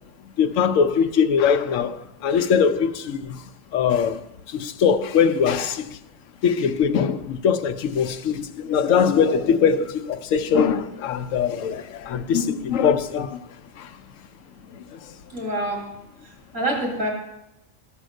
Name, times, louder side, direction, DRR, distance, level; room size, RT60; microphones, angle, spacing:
voice 1, 0.4-3.4 3.7-6.0 6.4-13.4 13.8-14.0 14.7-15.1, left 7 dB, 90° left, 1.0 m, -22 dB
voice 2, 15.3-15.8 16.5-17.1, right 1 dB, 55° right, 3.7 m, -25 dB
13.5 x 5.6 x 6.3 m
omnidirectional pair, 1.3 m